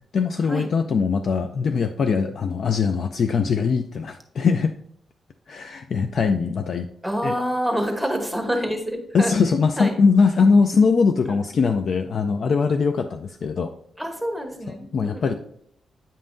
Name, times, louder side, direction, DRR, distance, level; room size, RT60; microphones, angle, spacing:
voice 1, 0.1-4.7 5.5-6.9 7.2-7.3 9.1-13.7 14.7-15.3, left 5 dB, 50° left, 7 dB, 0.3 m, -21 dB
voice 2, 7.0-9.3 9.8-9.9 11.3-11.4 14.0-15.3, equal, ahead, 4 dB, 1.0 m, -27 dB
8.7 x 5.5 x 2.6 m, 0.69 s
wide cardioid pair, 150°, 0 cm